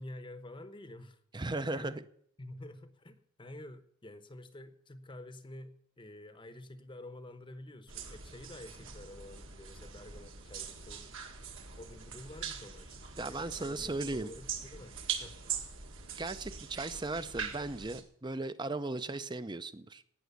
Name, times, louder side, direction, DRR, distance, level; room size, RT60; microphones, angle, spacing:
voice 1, 0.0-1.2 1.7-1.9 2.4-11.3 11.8-15.4, left 1 dB, 20° left, 0.9 m, -49 dB
voice 2, 1.3-2.0 13.2-14.3 16.2-20.0, right 2 dB, 20° right, 0.6 m, -37 dB
sound 1, 7.9-18.0, right 7 dB, 60° right, 1.9 m, -42 dB
17.5 x 6.2 x 8.2 m
head